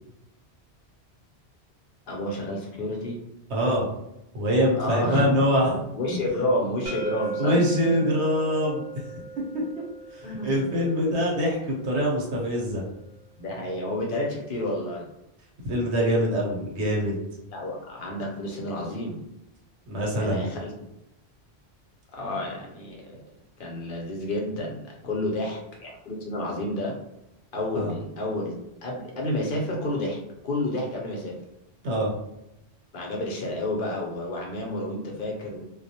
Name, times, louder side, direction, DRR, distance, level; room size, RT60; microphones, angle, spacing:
voice 1, 2.1-3.2 4.7-5.3 5.7-7.8 10.2-10.6 13.4-15.1 17.5-19.2 20.1-20.7 22.1-23.1 23.6-27.0 27.5-28.5 28.8-31.4 32.9-35.6, left 1 dB, 60° left, -1 dB, 0.7 m, -30 dB
voice 2, 3.5-3.8 4.3-5.7 6.1-6.2 7.4-8.8 9.8-9.9 10.1-12.8 15.6-17.2 19.9-20.4 27.7-27.9 31.8-32.1, equal, 85° right, -3 dB, 1.1 m, -24 dB
sound 1, 6.9-12.7, right 4 dB, 55° right, 0.8 m, -38 dB
2.3 x 2.0 x 2.7 m, 0.88 s
omnidirectional pair, 1.1 m